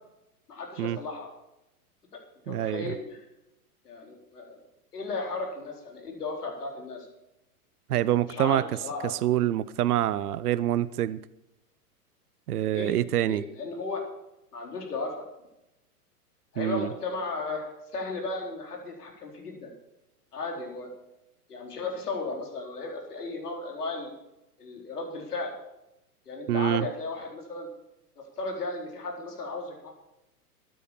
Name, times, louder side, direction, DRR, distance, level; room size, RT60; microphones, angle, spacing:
voice 1, 0.5-1.3 2.5-3.2 3.8-4.6 4.9-7.1 8.2-9.1 12.7-13.0 13.3-14.0 14.5-15.2 16.5-19.7 20.3-20.9 21.5-24.1 24.6-25.5 26.3-27.7 28.2-29.9, left 3 dB, 80° left, 1 dB, 4.1 m, -35 dB
voice 2, 2.5-2.9 7.9-8.6 9.2-11.2 12.5-13.4 16.6-16.9 26.5-26.9, right 12 dB, 75° right, 17 dB, 0.7 m, -26 dB
13.0 x 9.4 x 7.0 m, 0.89 s
hypercardioid pair, 110°, 46 cm